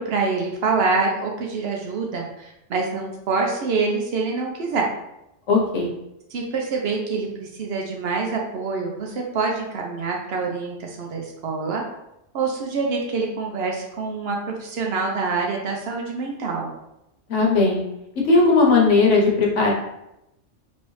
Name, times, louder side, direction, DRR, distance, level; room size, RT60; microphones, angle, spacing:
voice 1, 0.0-4.9 6.3-11.8 12.3-16.7, right 4 dB, 65° right, 0 dB, 0.8 m, -26 dB
voice 2, 5.5-5.9 17.3-17.8 18.2-19.7, left 3 dB, 80° left, -1 dB, 1.2 m, -17 dB
3.0 x 2.7 x 3.0 m, 0.86 s
omnidirectional pair, 1.2 m